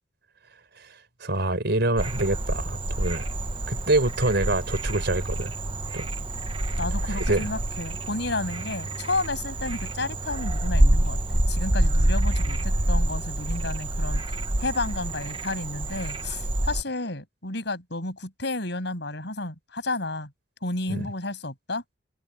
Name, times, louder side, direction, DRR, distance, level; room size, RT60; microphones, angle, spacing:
voice 1, 1.2-3.3 3.7-5.5 5.9-6.1 7.1-7.5 20.9-21.1, right 2 dB, 65° right, 4.6 m, -26 dB
Frog, 2.0-16.8, right 1 dB, 30° right, 1.2 m, -27 dB
voice 2, 6.8-20.3 20.6-21.8, left 2 dB, 65° left, 7.9 m, -32 dB
open air
head